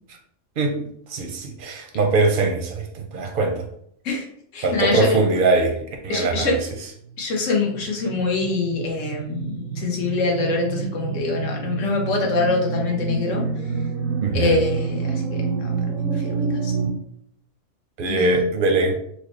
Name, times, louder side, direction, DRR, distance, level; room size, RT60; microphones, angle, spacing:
voice 1, 0.6-3.6 4.6-5.7 6.0-6.5 14.2-14.5 18.0-19.0, right 3 dB, 55° right, 4 dB, 0.6 m, -21 dB
voice 2, 4.5-5.1 6.1-6.6 7.2-13.4 14.3-16.4 16.6-16.7 18.1-18.5, left 3 dB, 75° left, 0 dB, 1.2 m, -24 dB
sound 1, 7.1-16.9, right 5 dB, 85° right, 1.0 m, -28 dB
4.5 x 2.0 x 3.0 m, 0.70 s
omnidirectional pair, 1.3 m